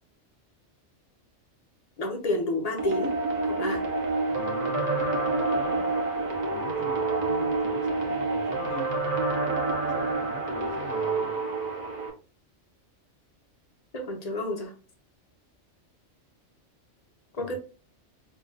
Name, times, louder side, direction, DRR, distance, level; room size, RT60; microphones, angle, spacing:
voice 1, 2.0-3.8 13.9-14.7 17.4-17.6, left 1 dB, 40° left, 0.7 m, -30 dB
sound 1, 2.8-12.1, right 3 dB, 45° right, 0.7 m, -28 dB
voice 2, 4.3-6.0 6.5-9.0 9.9-11.4 17.3-17.6, left 4 dB, 75° left, 1.0 m, -43 dB
4.6 x 2.3 x 2.3 m
omnidirectional pair, 1.2 m